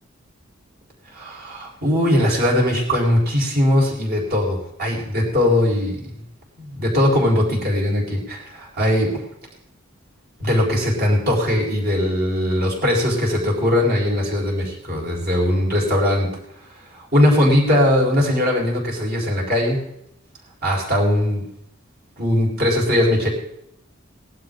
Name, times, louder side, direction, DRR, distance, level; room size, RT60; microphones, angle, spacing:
voice 1, 1.1-6.0 6.6-9.2 10.4-16.3 17.1-19.8 20.6-21.4 22.2-23.3, left 1 dB, 50° right, -2 dB, 4.6 m, -20 dB
19.5 x 11.5 x 3.9 m, 0.76 s
head